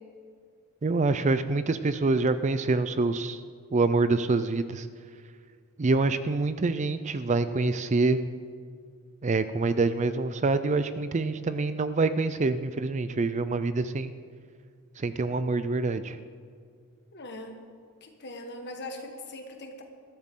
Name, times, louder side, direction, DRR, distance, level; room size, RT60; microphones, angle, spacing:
voice 1, 0.8-3.4 3.7-4.9 5.8-8.2 9.2-14.1 15.0-16.2, right 3 dB, 30° right, 12 dB, 0.4 m, -26 dB
voice 2, 17.1-17.6 18.0-19.8, left 1 dB, 50° left, 4 dB, 1.6 m, -41 dB
20.5 x 13.5 x 3.8 m, 2.1 s
head